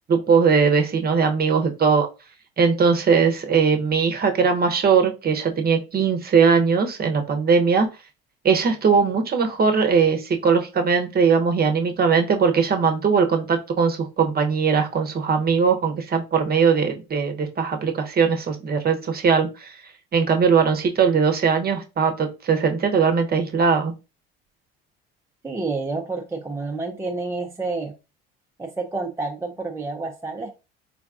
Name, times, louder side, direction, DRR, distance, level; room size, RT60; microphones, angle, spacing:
voice 1, 0.1-2.1 2.6-7.9 8.4-19.8 20.1-23.9, right 5 dB, 30° right, 6 dB, 0.8 m, -20 dB
voice 2, 25.4-27.9 28.6-30.5, right 3 dB, 10° right, 2 dB, 0.5 m, -29 dB
4.0 x 2.3 x 2.4 m, 0.28 s
hypercardioid pair, 65°, 30 cm